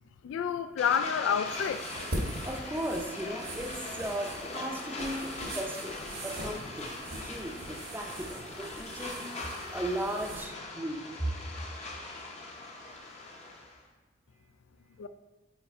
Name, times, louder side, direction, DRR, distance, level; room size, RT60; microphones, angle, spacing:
voice 1, 0.2-1.9 15.0-15.1, left 7 dB, 75° left, 0.3 m, -29 dB
sound 1, 0.8-13.8, left 2 dB, 35° left, 0.8 m, -41 dB
sound 2, 1.4-10.4, right 1 dB, 80° right, 1.3 m, -41 dB
voice 2, 2.4-9.2 9.7-11.0, right 1 dB, 10° right, 0.6 m, -37 dB
5.8 x 4.4 x 4.3 m
head